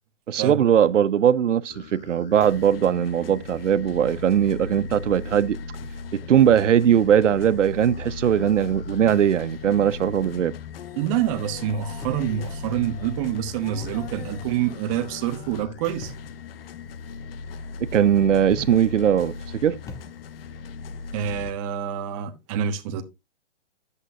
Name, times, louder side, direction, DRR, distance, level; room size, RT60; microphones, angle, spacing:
voice 1, 0.3-5.6 6.1-10.5 17.8-19.8, right 9 dB, 80° right, 0.8 m, -20 dB
sound 1, 1.7-21.5, left 4 dB, 50° left, 0.9 m, -37 dB
voice 2, 11.0-16.1 21.1-23.0, right 10 dB, 25° right, 1.2 m, -27 dB
sound 2, 12.0-12.8 13.7-14.4 16.0-16.4 18.4-19.1 19.8-20.6, left 1 dB, 10° left, 0.9 m, -42 dB
11.0 x 8.2 x 2.7 m
hypercardioid pair, 150°, 36 cm